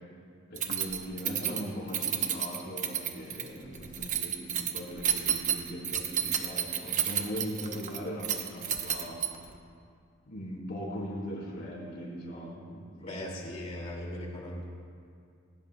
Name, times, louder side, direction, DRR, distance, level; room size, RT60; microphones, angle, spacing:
voice 1, 0.5-9.2 10.3-13.2, equal, 55° left, -5 dB, 4.2 m, -39 dB
Keys jangling, 0.6-9.6, right 9 dB, 40° right, 0.9 m, -31 dB
voice 2, 13.0-14.7, left 1 dB, 30° left, -2 dB, 2.5 m, -38 dB
19.5 x 19.0 x 2.3 m, 2.4 s
head